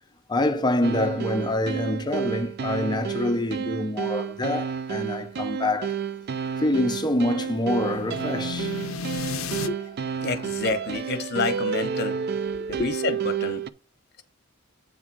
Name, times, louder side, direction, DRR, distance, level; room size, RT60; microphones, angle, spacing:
voice 1, 0.3-6.0 6.6-8.8 9.6-10.0 12.5-12.9, left 1 dB, 20° left, 0.7 m, -26 dB
sound 1, 0.8-13.7, right 7 dB, 50° right, 0.4 m, -30 dB
sound 2, 6.4-9.7, left 6 dB, 85° left, 0.5 m, -35 dB
voice 2, 10.2-12.2 12.7-13.6, left 4 dB, 55° left, 0.9 m, -29 dB
8.2 x 3.7 x 6.0 m
head